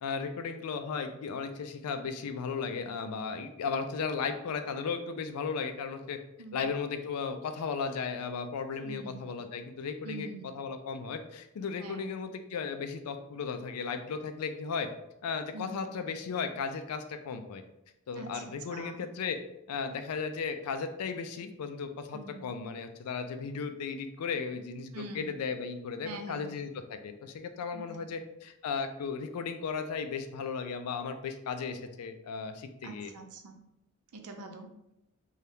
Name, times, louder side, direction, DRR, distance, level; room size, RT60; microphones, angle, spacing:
voice 1, 0.0-6.2 6.5-14.9 15.2-17.6 18.1-19.4 19.7-33.1, left 5 dB, 90° left, 8 dB, 0.4 m, -35 dB
voice 2, 8.8-9.3 10.0-10.5 11.8-12.2 15.5-15.7 18.2-18.4 18.7-19.0 22.1-22.5 24.9-25.3 26.0-26.6 27.7-27.8 32.8-33.6 34.1-34.7, right 2 dB, 85° right, 5 dB, 0.5 m, -44 dB
2.7 x 2.3 x 3.3 m, 0.84 s
head